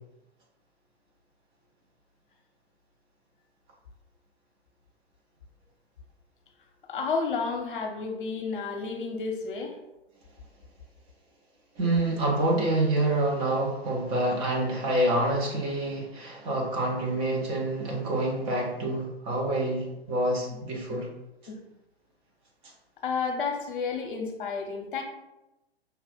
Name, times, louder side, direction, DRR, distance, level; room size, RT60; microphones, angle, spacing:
voice 1, 6.9-9.8 20.9-21.0 21.5-21.6 23.0-25.0, left 5 dB, 55° left, 3 dB, 0.8 m, -31 dB
voice 2, 11.8-21.1, right 1 dB, 20° right, -2 dB, 0.6 m, -27 dB
5.6 x 2.4 x 3.6 m, 0.96 s
figure-of-eight pair, 110°, 32 cm